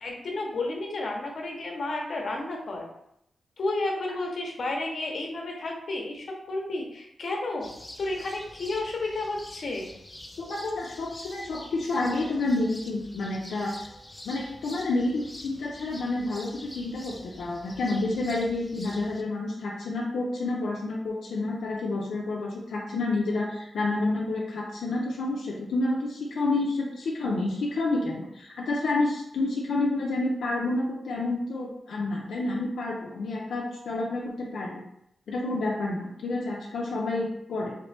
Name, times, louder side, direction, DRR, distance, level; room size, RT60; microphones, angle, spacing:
voice 1, 0.0-2.9 3.6-7.7 8.0-9.9, left 2 dB, 60° left, 0 dB, 0.8 m, -31 dB
sound 1, 7.6-19.2, left 1 dB, 20° left, 0.4 m, -46 dB
voice 2, 10.4-13.9 14.2-34.8 35.3-37.8, left 2 dB, 90° left, -3 dB, 0.5 m, -29 dB
3.2 x 3.0 x 3.3 m, 0.77 s
cardioid pair, 90°, 0 cm